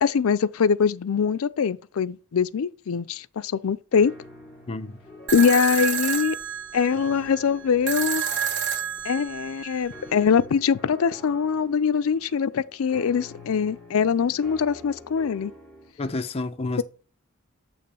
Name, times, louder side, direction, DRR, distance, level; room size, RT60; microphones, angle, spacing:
voice 1, 0.0-4.1 5.3-6.4 6.7-8.2 9.0-15.5, left 6 dB, 70° left, 0.4 m, -23 dB
sound 1, 3.9-15.9, left 2 dB, ahead, 1.9 m, -47 dB
voice 2, 4.7-5.0 16.0-16.8, left 2 dB, 30° left, 0.6 m, -29 dB
sound 2, 5.3-10.3, right 7 dB, 55° right, 1.0 m, -30 dB
8.6 x 3.0 x 5.5 m
head